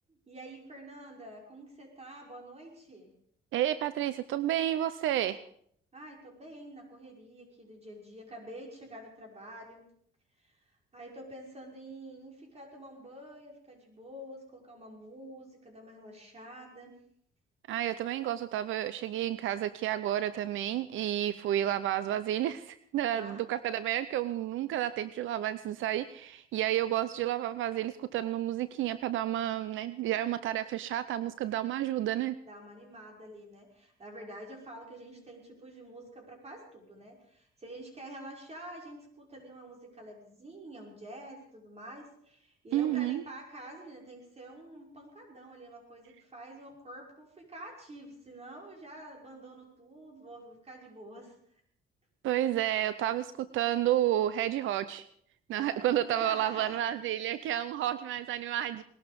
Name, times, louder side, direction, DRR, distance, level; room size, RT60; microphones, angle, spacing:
voice 1, 0.1-3.1 5.9-9.9 10.4-10.6 10.9-17.0 23.1-23.4 32.5-51.4 55.5-56.8, right 1 dB, 30° right, 0 dB, 5.7 m, -48 dB
voice 2, 3.5-5.4 17.7-32.3 42.7-43.2 52.2-55.1 55.5-58.8, right 12 dB, 80° right, 14 dB, 0.6 m, -31 dB
19.5 x 12.5 x 5.2 m, 0.66 s
cardioid pair, 90°, 20 cm